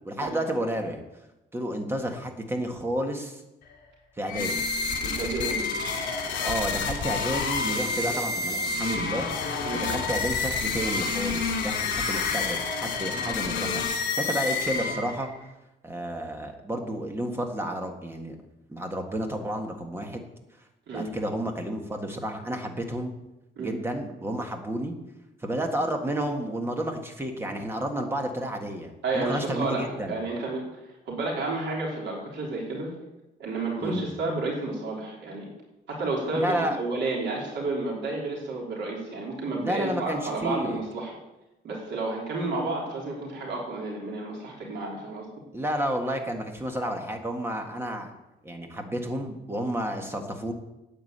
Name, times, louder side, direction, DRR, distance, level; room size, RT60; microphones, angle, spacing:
voice 1, 0.0-1.0 1.5-3.4 4.2-4.6 6.4-9.3 9.7-13.8 14.1-15.3 15.8-18.4 18.7-20.3 20.9-23.1 23.6-25.0 25.4-30.1 33.8-34.0 36.3-36.8 39.6-40.8 45.5-48.1 48.4-50.5, right 1 dB, 15° right, 3 dB, 1.7 m, -31 dB
sound 1, 4.3-15.3, left 4 dB, 70° left, 2.9 m, -29 dB
voice 2, 5.0-5.6 9.6-9.9 20.9-21.1 23.6-23.8 29.0-30.8 31.1-32.9 33.4-35.5 35.9-41.1 41.6-45.3, right 2 dB, 75° right, -3 dB, 4.0 m, -31 dB
9.9 x 9.4 x 8.0 m, 0.97 s
wide cardioid pair, 165°, 19 cm